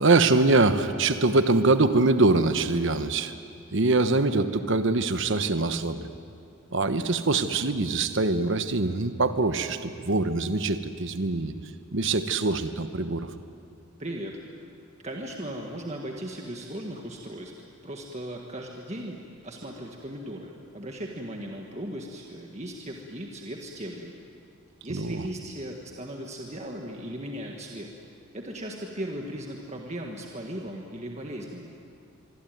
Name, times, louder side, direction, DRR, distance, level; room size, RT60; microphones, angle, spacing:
voice 1, 0.0-3.3 3.7-6.1 6.7-11.5 11.9-13.3 24.9-25.3, right 3 dB, 60° right, 10 dB, 1.1 m, -23 dB
voice 2, 14.0-14.4 15.0-17.5 17.8-24.1 24.8-27.9 28.3-31.7, right 1 dB, 30° right, 1 dB, 1.8 m, -37 dB
25.0 x 24.0 x 9.4 m, 2.4 s
head